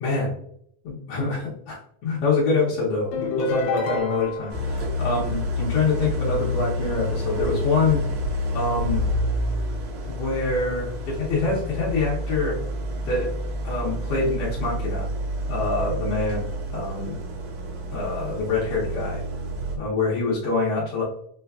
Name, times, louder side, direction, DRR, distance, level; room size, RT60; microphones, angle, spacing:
voice 1, 0.0-0.3 0.8-8.0 8.5-9.0 10.1-12.6 13.1-13.3 13.6-15.1 15.5-17.2 17.9-19.2 19.7-21.0, left 3 dB, 70° left, -6 dB, 1.5 m, -25 dB
sound 1, 3.1-4.6, left 5 dB, 85° left, 1.9 m, -27 dB
Idling, 4.5-19.8, equal, 75° right, 1.9 m, -29 dB
5.3 x 2.2 x 2.2 m, 0.69 s
omnidirectional pair, 3.3 m